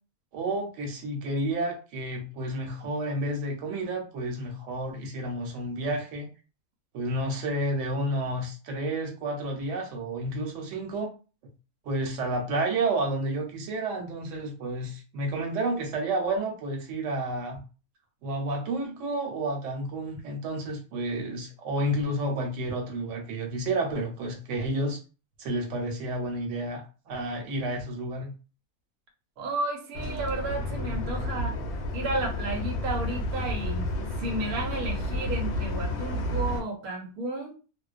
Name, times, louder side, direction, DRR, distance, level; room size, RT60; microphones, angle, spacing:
voice 1, 0.3-6.3 6.9-11.1 11.8-17.6 18.2-25.0 25.4-28.3, right 1 dB, 65° right, 1 dB, 1.0 m, -30 dB
voice 2, 29.4-31.6 31.9-33.9 34.2-37.6, right 2 dB, 90° right, 2 dB, 1.1 m, -32 dB
sound 1, 29.9-36.6, left 1 dB, 65° left, 0.8 m, -31 dB
2.4 x 2.1 x 2.4 m, 0.34 s
omnidirectional pair, 1.5 m